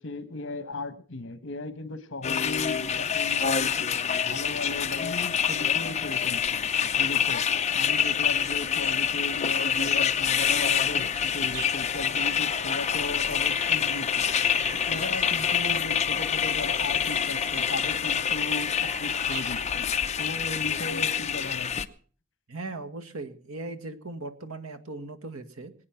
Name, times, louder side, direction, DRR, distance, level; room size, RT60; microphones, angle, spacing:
voice 1, 0.0-14.3 14.7-21.8, left 2 dB, 60° left, 11 dB, 1.5 m, -37 dB
sound 1, 2.2-21.8, left 8 dB, 30° left, 0.7 m, -26 dB
sound 2, 9.7-21.2, right 2 dB, 60° right, 4.7 m, -45 dB
voice 2, 22.5-25.7, right 2 dB, 85° right, 6 dB, 1.9 m, -38 dB
22.5 x 9.7 x 5.9 m, 0.44 s
head